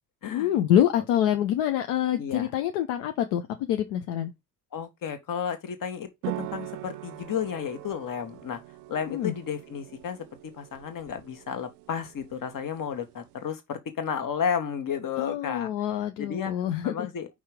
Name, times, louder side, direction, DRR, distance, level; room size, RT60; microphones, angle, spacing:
voice 1, 0.2-4.3 9.1-9.3 15.2-17.1, left 11 dB, 65° left, 0.8 m, -26 dB
voice 2, 2.2-2.5 4.7-8.6 8.9-15.7 16.2-16.5 16.8-17.3, left 7 dB, 45° left, 1.5 m, -32 dB
sound 1, 6.2-13.5, right 17 dB, 75° right, 0.5 m, -42 dB
5.5 x 3.6 x 5.0 m
figure-of-eight pair, 50°, 46 cm